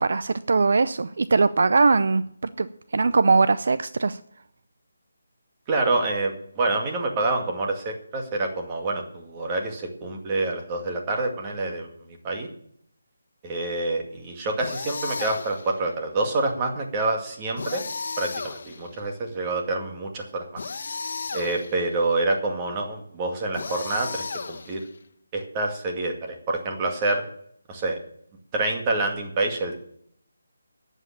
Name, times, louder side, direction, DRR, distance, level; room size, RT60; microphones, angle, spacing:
voice 1, 0.0-2.2 2.6-4.2, right 4 dB, 60° right, 13 dB, 0.6 m, -21 dB
voice 2, 5.7-11.9 12.2-12.5 13.4-17.8 18.2-20.6 21.3-24.8 25.3-27.2 27.7-28.0 28.5-29.7, right 2 dB, 20° right, 2 dB, 2.1 m, -27 dB
sound 1, 14.6-15.7 17.6-19.0 20.6-21.9 23.5-25.0, left 4 dB, 50° left, 1.4 m, -34 dB
11.5 x 8.3 x 8.6 m, 0.66 s
figure-of-eight pair, 165°, 0 cm